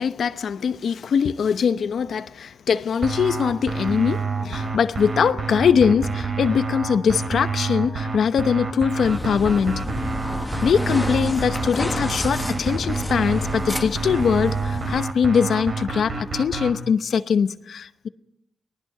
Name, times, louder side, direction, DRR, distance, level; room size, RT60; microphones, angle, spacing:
voice 1, 0.0-9.9 10.6-18.1, left 7 dB, 75° left, 0.8 m, -22 dB
sound 1, 3.0-16.7, right 4 dB, 60° right, 3.7 m, -28 dB
sound 2, 9.0-15.0, left 2 dB, 20° left, 1.2 m, -31 dB
29.5 x 19.5 x 4.9 m
cardioid pair, 70°, 0 cm